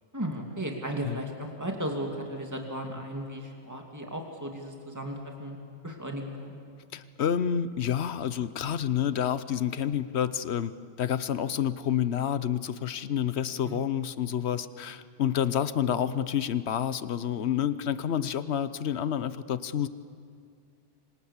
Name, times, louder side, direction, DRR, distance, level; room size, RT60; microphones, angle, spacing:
voice 1, 0.1-5.6 5.8-6.5 13.6-13.8 15.8-16.1, right 1 dB, 15° right, 1 dB, 2.6 m, -35 dB
voice 2, 6.9-10.7 11.0-19.9, left 9 dB, 85° left, 14 dB, 1.1 m, -29 dB
27.0 x 25.0 x 7.3 m, 2.2 s
omnidirectional pair, 1.1 m